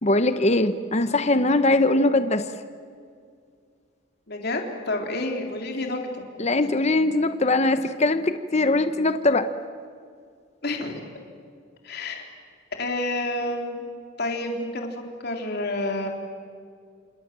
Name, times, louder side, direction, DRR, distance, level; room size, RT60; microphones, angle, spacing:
voice 1, 0.0-2.5 6.4-9.5, left 2 dB, 35° left, 10 dB, 1.0 m, -21 dB
voice 2, 4.3-6.2 10.6-11.1 11.8-12.2 12.8-13.9 14.2-16.1, left 2 dB, 55° left, 2 dB, 3.7 m, -29 dB
28.0 x 27.5 x 7.6 m, 2.2 s
head